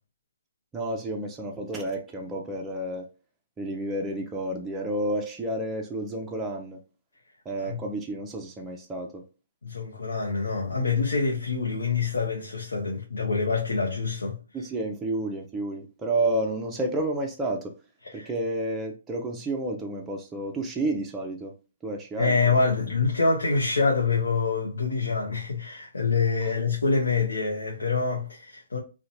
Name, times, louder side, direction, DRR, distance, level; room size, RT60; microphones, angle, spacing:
voice 1, 0.7-3.1 3.6-6.8 7.5-9.2 14.5-17.7 18.1-21.5 21.8-22.4, right 1 dB, 10° right, 0.4 m, -30 dB
voice 2, 9.6-14.4 18.0-18.3 22.2-28.8, left 4 dB, 90° left, 0.6 m, -26 dB
2.8 x 2.1 x 2.6 m
hypercardioid pair, 145°, 0 cm